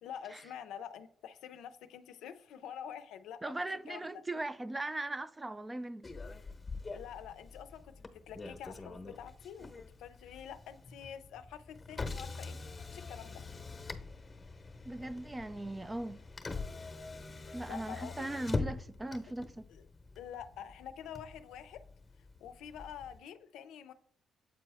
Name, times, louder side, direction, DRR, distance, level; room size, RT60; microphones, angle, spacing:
voice 1, 0.0-3.6 3.9-4.1 6.9-9.7 10.0-12.6 12.9-13.4 17.6-18.3 19.7-19.8 20.2-21.8 22.4-23.9, left 9 dB, 85° left, 0.5 m, -47 dB
voice 2, 3.4-6.1 14.8-16.2 17.5-19.7, right 2 dB, 15° right, 0.4 m, -39 dB
Motor vehicle (road), 6.0-23.2, left 3 dB, 25° left, 0.9 m, -44 dB
7.8 x 4.3 x 3.4 m
cardioid pair, 90°, 0 cm